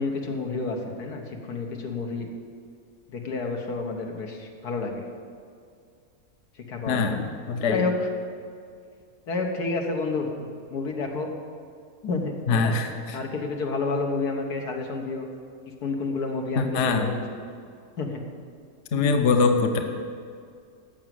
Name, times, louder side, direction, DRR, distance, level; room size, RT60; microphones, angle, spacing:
voice 1, 0.0-2.3 3.1-5.0 6.6-7.2 7.5-8.1 9.3-11.3 12.0-12.8 13.1-15.3 15.7-17.2 18.0-18.2, left 3 dB, 80° left, 2 dB, 1.8 m, -30 dB
voice 2, 6.9-7.8 12.5-13.2 16.6-17.1 18.9-19.8, left 4 dB, 55° left, 5 dB, 1.1 m, -23 dB
14.5 x 6.2 x 7.7 m, 2.3 s
omnidirectional pair, 1.6 m